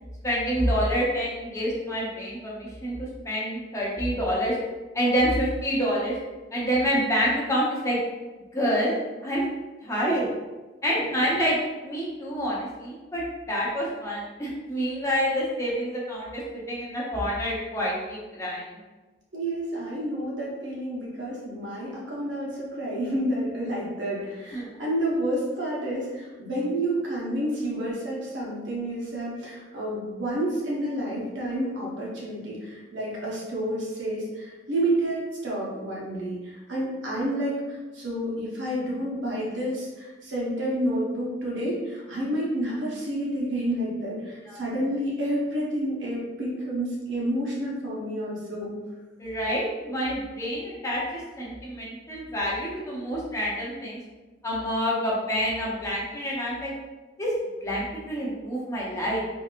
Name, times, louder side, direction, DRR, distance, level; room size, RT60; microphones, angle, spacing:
voice 1, 0.2-4.6 4.9-6.2 6.5-8.0 8.5-8.9 9.2-9.5 9.8-10.2 10.8-11.6 11.8-16.4 16.7-18.7 24.5-24.7 44.5-44.6 49.2-54.0 54.4-56.7 57.2-57.3 57.6-59.2, equal, 15° left, -6 dB, 0.7 m, -27 dB
voice 2, 19.3-48.8, right 1 dB, 85° right, -5 dB, 1.1 m, -29 dB
3.8 x 2.9 x 2.5 m, 1.2 s
head